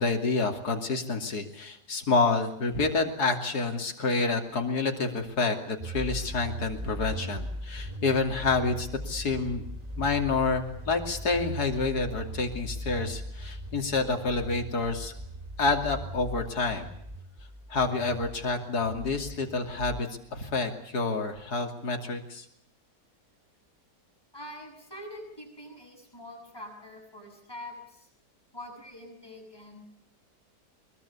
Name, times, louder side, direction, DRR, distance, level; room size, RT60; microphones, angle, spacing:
voice 1, 0.0-9.6 10.0-15.1 15.6-16.9 17.7-22.4, left 3 dB, 65° left, 4 dB, 3.3 m, -28 dB
sound 1, 5.8-20.0, right 1 dB, 20° right, 2.5 m, -39 dB
voice 2, 24.3-28.1 28.5-29.8, left 1 dB, 15° left, 1 dB, 8.1 m, -44 dB
23.0 x 22.0 x 8.5 m, 0.71 s
omnidirectional pair, 1.8 m